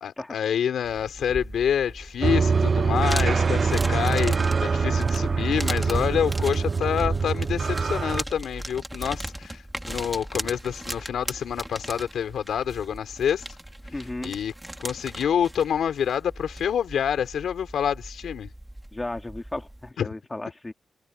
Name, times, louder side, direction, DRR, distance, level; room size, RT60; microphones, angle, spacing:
voice 1, 0.0-13.4 14.2-14.5 14.8-18.5 20.0-20.1, left 8 dB, 85° left, 3.2 m, -27 dB
sound 1, 0.8-19.9, right 1 dB, 10° right, 3.0 m, -38 dB
sound 2, 2.2-8.2, right 5 dB, 45° right, 0.4 m, -24 dB
voice 2, 13.9-14.3 18.9-20.7, left 2 dB, 20° left, 2.5 m, -34 dB
cardioid pair, 75°, 0 cm